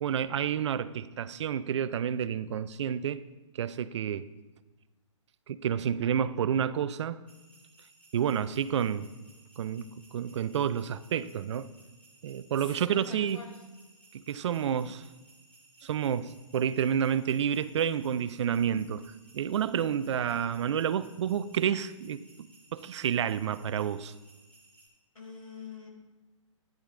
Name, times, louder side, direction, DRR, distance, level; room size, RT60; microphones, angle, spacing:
voice 1, 0.0-3.2 3.5-4.3 5.5-7.2 8.1-9.1 9.6-11.7 12.2-13.4 14.1-15.0 15.8-19.0 19.3-22.2 22.7-24.1, right 8 dB, 60° right, 0.5 m, -29 dB
sound 1, 7.3-24.9, right 2 dB, 10° left, 2.8 m, -60 dB
voice 2, 12.6-13.5 25.1-25.9, left 4 dB, 90° left, 3.4 m, -45 dB
12.5 x 10.5 x 2.5 m
hypercardioid pair, 135°, 17 cm